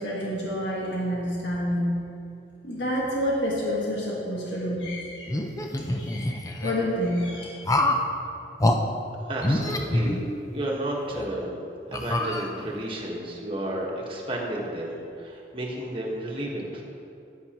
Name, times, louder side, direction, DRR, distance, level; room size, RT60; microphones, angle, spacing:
voice 1, 0.0-2.0 2.6-5.4 6.0-7.9, equal, 85° left, -5 dB, 1.6 m, -28 dB
sound 1, 5.3-6.7 7.6-8.1 8.6-8.8 9.4-10.7 11.1-11.3 11.9-12.8, left 1 dB, 20° left, 0.5 m, -26 dB
voice 2, 9.3-10.2 10.5-11.6 11.9-16.8, right 1 dB, 30° right, -2 dB, 1.4 m, -32 dB
9.8 x 9.3 x 3.0 m, 2.5 s
head